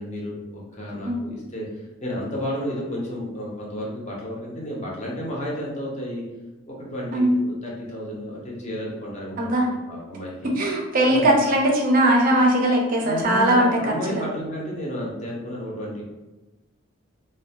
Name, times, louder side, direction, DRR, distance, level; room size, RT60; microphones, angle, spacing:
voice 1, 0.0-6.2 6.7-9.5 9.9-10.6 11.1-11.3 13.0-16.0, equal, 35° left, -4 dB, 0.6 m, -32 dB
voice 2, 10.6-14.2, right 1 dB, 40° right, 0 dB, 0.4 m, -20 dB
2.6 x 2.1 x 2.8 m, 1.1 s
head